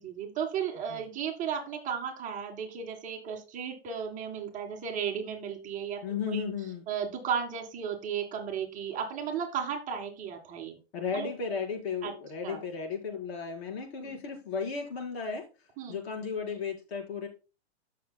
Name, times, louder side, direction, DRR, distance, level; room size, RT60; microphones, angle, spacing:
voice 1, 0.0-6.0 6.3-6.4 6.9-10.8 11.1-11.3 12.0-12.1 12.4-12.6 14.0-14.1 15.8-16.0, right 7 dB, 25° right, 2 dB, 1.8 m, -34 dB
voice 2, 6.0-6.9 10.9-15.5 15.9-17.3, left 5 dB, 65° left, 1 dB, 4.5 m, -34 dB
14.5 x 6.5 x 2.2 m, 0.32 s
hypercardioid pair, 145°, 33 cm